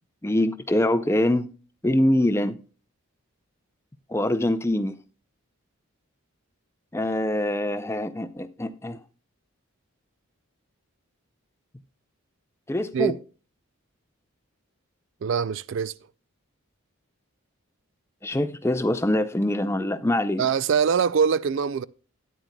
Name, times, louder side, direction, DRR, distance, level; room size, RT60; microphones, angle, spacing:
voice 1, 0.2-1.5 1.8-2.6 4.1-5.0 6.9-9.0 12.7-13.1 18.2-20.4, left 1 dB, 10° left, 0.5 m, -24 dB
voice 2, 15.2-15.9 20.4-21.9, right 6 dB, 55° right, 0.3 m, -23 dB
13.0 x 9.4 x 2.2 m
head